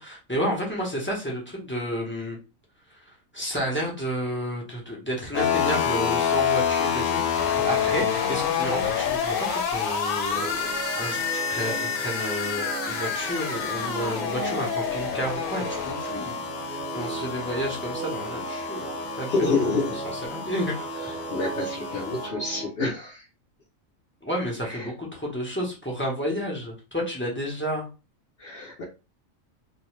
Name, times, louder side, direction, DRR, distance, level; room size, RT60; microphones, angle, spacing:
voice 1, 0.0-2.4 2.9-18.9 19.2-21.2 24.2-27.9, equal, 10° left, -3 dB, 0.6 m, -31 dB
sound 1, 5.3-22.3, left 7 dB, 75° left, 1.0 m, -28 dB
sound 2, 10.3-22.7, right 4 dB, 45° right, 0.7 m, -36 dB
voice 2, 19.3-20.0 21.3-23.2 24.7-24.9 28.4-28.8, left 3 dB, 55° left, -3 dB, 0.8 m, -28 dB
2.6 x 2.1 x 3.1 m, 0.31 s
omnidirectional pair, 1.4 m